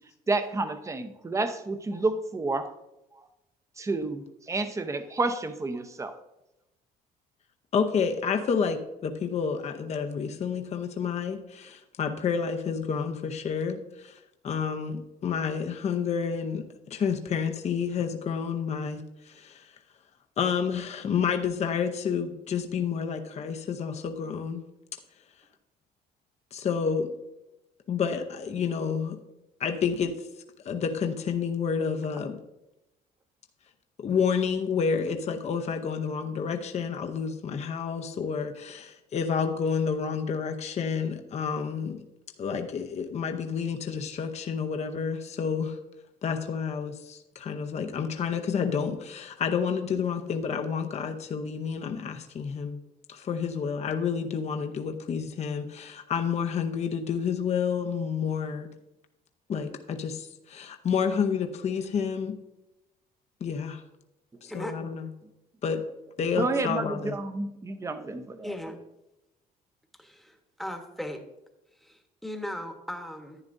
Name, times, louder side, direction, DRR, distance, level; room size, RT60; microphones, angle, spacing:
voice 1, 0.3-2.7 3.8-6.1 66.4-68.5, right 3 dB, 15° right, 9 dB, 0.7 m, -30 dB
voice 2, 7.7-14.1 14.4-16.7 16.9-19.6 20.4-24.6 26.5-27.1 27.9-29.2 29.6-30.2 30.6-32.4 34.0-42.0 42.4-45.8 46.2-52.8 53.1-58.7 59.5-62.4 63.4-63.8 64.4-65.1 65.6-65.8 66.2-67.2, left 6 dB, 40° left, 6 dB, 0.7 m, -29 dB
voice 3, 64.5-64.8 68.4-68.8 70.0-71.2 71.8-73.4, left 1 dB, ahead, 4 dB, 1.1 m, -38 dB
11.0 x 9.5 x 2.6 m, 0.93 s
cardioid pair, 110°, 17 cm